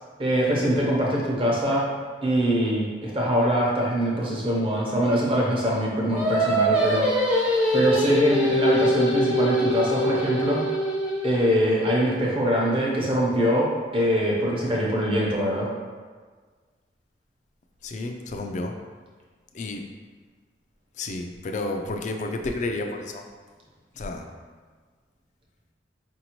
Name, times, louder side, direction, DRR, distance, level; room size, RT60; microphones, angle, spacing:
voice 1, 0.2-1.9 2.2-7.1 7.7-10.6 11.2-15.7, equal, 30° right, -4 dB, 0.8 m, -23 dB
Singing, 6.1-11.5, equal, 5° right, 0.6 m, -23 dB
voice 2, 17.8-18.8 19.5-19.8 20.9-23.2 23.9-24.3, left 2 dB, 45° left, 4 dB, 0.4 m, -31 dB
4.9 x 2.7 x 3.0 m, 1.5 s
head